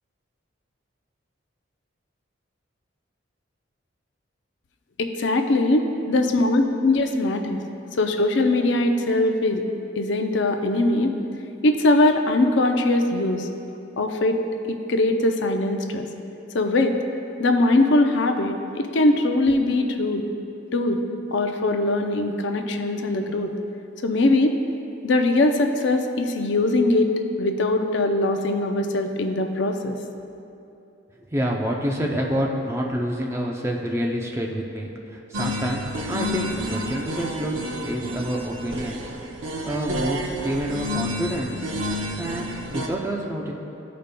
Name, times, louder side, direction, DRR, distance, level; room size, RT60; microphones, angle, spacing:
voice 1, 5.0-7.6 8.0-9.6 10.0-11.1 11.6-13.5 14.0-14.4 14.7-16.1 16.5-17.0 17.4-20.3 20.7-21.0 21.3-23.5 24.0-24.5 25.0-27.1 27.4-30.0, left 2 dB, 65° left, 5 dB, 0.5 m, -21 dB
voice 2, 31.3-35.8 36.1-39.1 39.6-41.7 42.2-43.5, equal, 15° right, -1 dB, 0.5 m, -28 dB
sound 1, 35.3-42.9, equal, 85° right, 0.7 m, -30 dB
14.0 x 5.1 x 2.2 m, 2.8 s
head